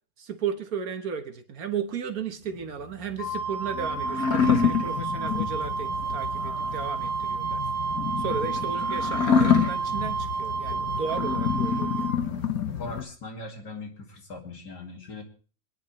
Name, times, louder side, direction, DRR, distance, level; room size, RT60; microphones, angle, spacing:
voice 1, 0.2-7.6 8.2-12.1, right 6 dB, 65° right, 6 dB, 1.7 m, -34 dB
sound 1, 2.6-13.0, left 7 dB, 65° left, 1.8 m, -28 dB
Wind instrument woodwind instrument, 3.2-12.2, right 5 dB, 45° left, 2.7 m, -31 dB
voice 2, 12.8-15.2, left 2 dB, 90° left, 2 dB, 2.9 m, -40 dB
26.0 x 10.0 x 3.2 m, 0.38 s
omnidirectional pair, 1.7 m